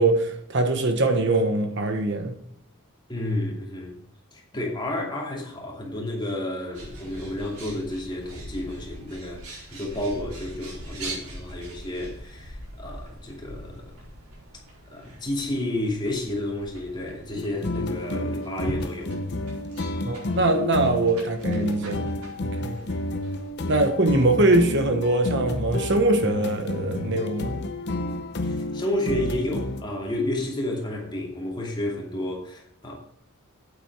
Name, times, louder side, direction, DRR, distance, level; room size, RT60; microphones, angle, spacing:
voice 1, 0.0-2.3 20.0-22.1 22.5-22.8 23.7-27.6, right 2 dB, 55° right, 6 dB, 1.2 m, -22 dB
voice 2, 3.1-4.0 4.3-13.9 14.9-19.2 28.4-32.9, left 1 dB, 20° left, -1 dB, 2.6 m, -31 dB
Bird, 6.7-23.5, right 1 dB, 90° right, 4.6 m, -42 dB
sound 1, 17.3-29.8, left 2 dB, 50° left, 0.8 m, -30 dB
8.9 x 8.5 x 4.7 m, 0.69 s
head